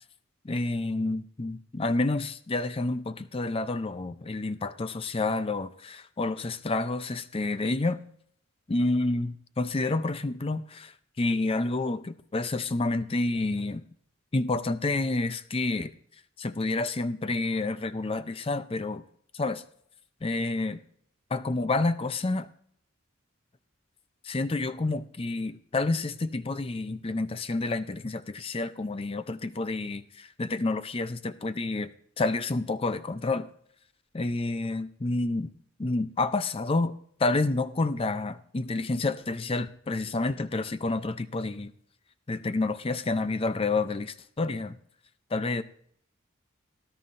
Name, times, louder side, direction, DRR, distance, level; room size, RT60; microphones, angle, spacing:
voice 1, 0.4-8.0 8.7-13.8 14.3-15.9 16.4-19.0 19.3-19.6 20.2-20.8 21.3-22.5 24.2-31.9 32.2-33.5 34.1-35.5 35.8-36.9 37.2-41.7 42.3-44.8 45.3-45.6, left 2 dB, 25° left, 12 dB, 0.5 m, -29 dB
19.0 x 11.5 x 2.6 m, 0.64 s
head